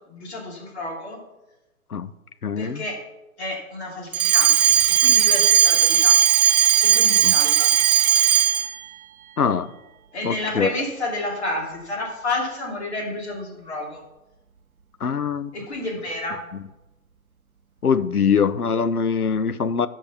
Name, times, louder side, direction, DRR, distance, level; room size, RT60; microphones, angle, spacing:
voice 1, 0.1-1.2 2.6-3.0 3.4-4.5 5.0-6.2 6.8-7.7 10.1-14.0 15.5-16.4, left 2 dB, 50° left, -2 dB, 3.0 m, -30 dB
voice 2, 2.4-2.8 7.2-7.3 9.4-9.7 10.2-10.7 15.0-15.5 17.8-19.9, left 6 dB, 85° left, 14 dB, 0.7 m, -22 dB
Alarm, 4.1-8.8, right 9 dB, 75° right, 0.7 m, -17 dB
8.0 x 5.5 x 6.9 m, 0.98 s
figure-of-eight pair, 140°, 43 cm